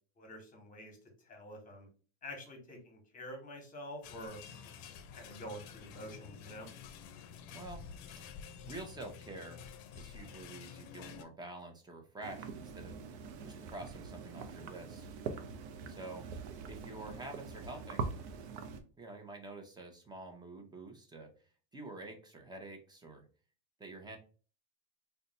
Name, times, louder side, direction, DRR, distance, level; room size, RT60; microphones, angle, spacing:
voice 1, 0.2-1.0 1.2-1.9 2.2-4.8 5.1-6.7, equal, 25° left, 3 dB, 1.2 m, -47 dB
sound 1, 4.0-11.2, left 7 dB, 70° left, 0.5 m, -50 dB
voice 2, 7.4-9.6 9.9-12.9 13.4-15.1 15.9-16.2 16.7-18.1 19.0-21.3 21.7-23.2 23.8-24.2, right 2 dB, 15° right, 3 dB, 0.7 m, -48 dB
sound 2, 12.2-18.8, right 5 dB, 85° right, 0.6 m, -43 dB
2.6 x 2.3 x 3.9 m, 0.38 s
supercardioid pair, 120°, 33 cm